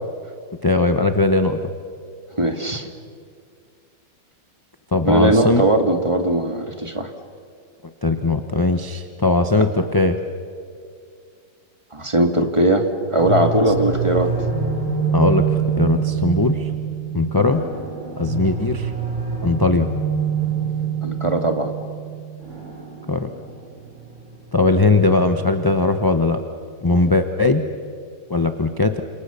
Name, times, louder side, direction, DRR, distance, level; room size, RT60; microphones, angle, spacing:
voice 1, 0.6-1.6 4.9-5.6 8.0-10.2 15.1-15.5 15.8-16.7 17.1-17.6 18.2-18.9 19.4-19.9 23.1-23.3 24.5-26.4 26.8-27.6 28.3-29.0, left 2 dB, 20° left, 6 dB, 0.6 m, -19 dB
voice 2, 2.4-2.9 5.0-7.1 11.9-14.3 21.0-21.7 27.0-27.1, right 1 dB, 15° right, 5 dB, 1.8 m, -19 dB
sound 1, 13.2-25.9, right 6 dB, 40° right, 6.2 m, -26 dB
29.5 x 27.0 x 6.9 m, 2.2 s
omnidirectional pair, 2.0 m